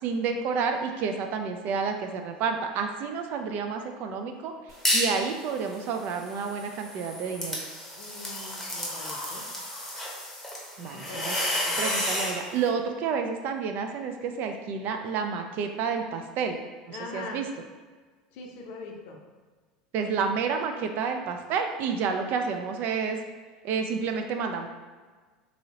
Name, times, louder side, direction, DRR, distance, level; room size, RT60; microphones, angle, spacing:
voice 1, 0.0-4.5 4.9-7.6 10.8-11.4 11.8-16.6 16.9-17.5 19.9-23.2 23.6-24.7, right 5 dB, 50° right, 5 dB, 0.3 m, -30 dB
sound 1, 4.7-5.2 5.6-12.4, left 1 dB, 5° left, 0.8 m, -31 dB
voice 2, 8.0-9.4 10.9-11.8 16.9-17.4 18.3-19.2, left 3 dB, 60° left, 1 dB, 0.6 m, -42 dB
2.7 x 2.7 x 2.8 m, 1.4 s
hypercardioid pair, 85°, 4 cm